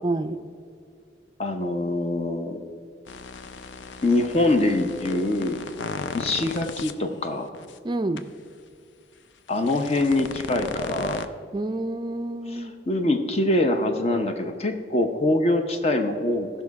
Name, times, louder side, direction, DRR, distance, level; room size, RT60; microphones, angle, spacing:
voice 1, 0.0-0.4 7.8-8.2 11.5-12.7, right 2 dB, 25° right, 8 dB, 0.4 m, -28 dB
voice 2, 1.4-2.6 4.0-5.6 6.1-7.5 9.5-11.3 12.5-16.5, left 2 dB, 35° left, 5 dB, 0.7 m, -24 dB
sound 1, 3.1-6.9 7.5-7.7 8.2-8.3 9.5-11.3, left 4 dB, 85° left, 0.5 m, -35 dB
16.0 x 5.7 x 4.7 m, 2.3 s
head